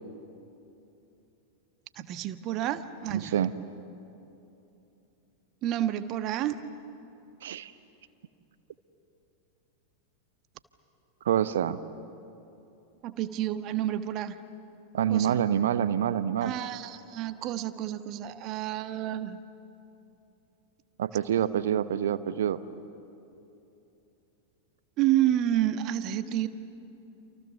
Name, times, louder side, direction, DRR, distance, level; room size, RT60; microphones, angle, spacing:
voice 1, 2.0-3.3 5.6-6.6 13.0-14.4 15.1-15.4 16.4-19.4 25.0-26.5, right 12 dB, 35° right, 10 dB, 1.3 m, -29 dB
voice 2, 3.1-3.5 7.4-7.7 11.2-11.8 14.9-16.5 21.0-22.6, right 10 dB, 60° right, 14 dB, 0.9 m, -26 dB
29.0 x 28.0 x 7.0 m, 2.9 s
figure-of-eight pair, 90°, 0 cm